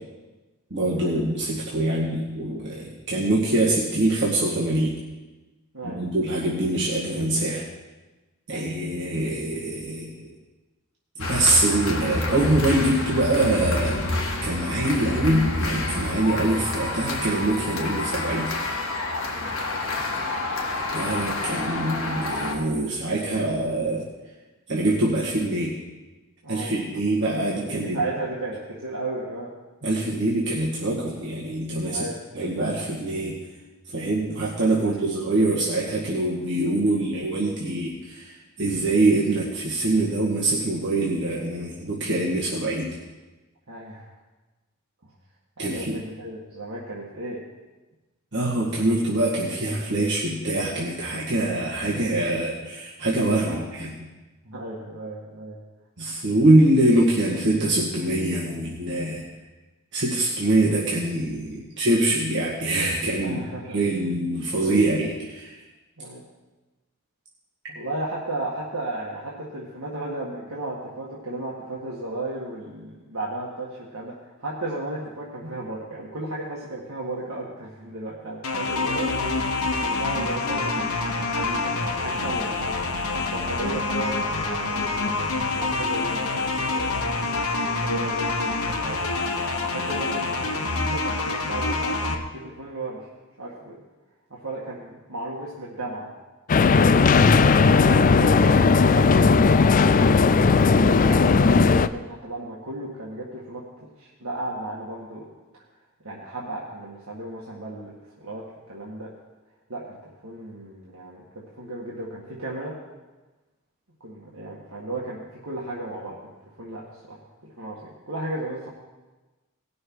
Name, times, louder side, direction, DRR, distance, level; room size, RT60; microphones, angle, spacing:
voice 1, 0.7-5.0 5.8-7.6 8.5-10.3 11.2-18.5 20.9-24.0 24.7-25.8 26.5-28.0 29.8-32.0 32.3-33.3 33.9-42.9 45.6-46.0 48.3-53.9 56.0-59.3 59.9-65.5, right 1 dB, 55° right, -6 dB, 1.9 m, -24 dB
sound 1, 11.2-22.5, left 2 dB, 65° left, 1.7 m, -28 dB
voice 2, 26.4-26.8 27.5-29.5 31.9-32.2 34.8-35.1 43.7-44.1 45.0-45.1 45.6-47.4 53.5-53.7 54.4-55.6 63.2-63.8 66.0-66.2 67.7-79.4 79.8-87.0 87.8-93.1 93.4-93.8 94.3-96.1 97.7-100.1 100.5-103.6 104.0-105.3 106.0-107.9 108.2-109.1 109.7-112.7 114.0-116.1 116.6-118.7, right 2 dB, 75° right, -6 dB, 1.8 m, -35 dB
sound 2, 78.4-92.1, left 3 dB, 85° left, 1.1 m, -26 dB
sound 3, 96.5-101.9, left 4 dB, 40° left, 0.4 m, -17 dB
18.5 x 6.3 x 4.6 m, 1.2 s
head